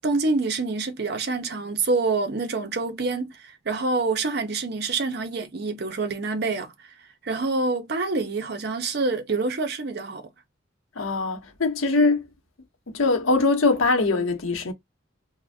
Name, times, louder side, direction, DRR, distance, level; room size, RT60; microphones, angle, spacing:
voice 1, 0.0-6.7 7.2-10.3, right 3 dB, 50° right, 0.5 m, -26 dB
voice 2, 11.0-12.2 12.9-14.7, left 3 dB, 80° left, 0.8 m, -22 dB
2.5 x 2.0 x 3.4 m
head